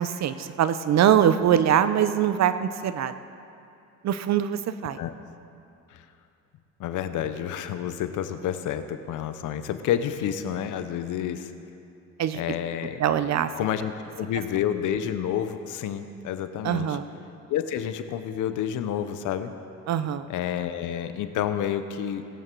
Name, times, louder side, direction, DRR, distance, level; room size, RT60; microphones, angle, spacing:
voice 1, 0.0-3.1 4.0-5.0 12.2-12.4 13.0-13.5 16.6-17.0 19.9-20.3, right 9 dB, 60° right, 12 dB, 0.7 m, -23 dB
voice 2, 6.8-11.5 12.3-13.0 13.6-13.9 14.2-17.0 17.5-19.5 20.3-22.3, left 10 dB, 85° left, 10 dB, 0.8 m, -29 dB
17.5 x 9.2 x 4.5 m, 2.6 s
cardioid pair, 90°, 30 cm